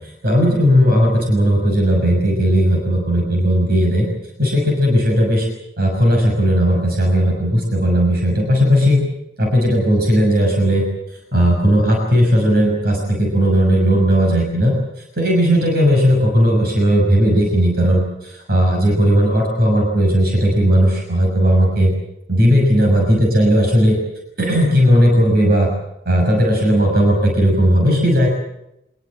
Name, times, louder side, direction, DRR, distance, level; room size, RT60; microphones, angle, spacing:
voice 1, 0.0-4.1 4.4-5.5 5.8-9.1 9.4-10.9 11.3-22.0 22.3-24.0 24.4-25.7 26.1-28.3, equal, 60° right, 1 dB, 6.1 m, -16 dB
26.0 x 20.0 x 7.6 m, 0.83 s
head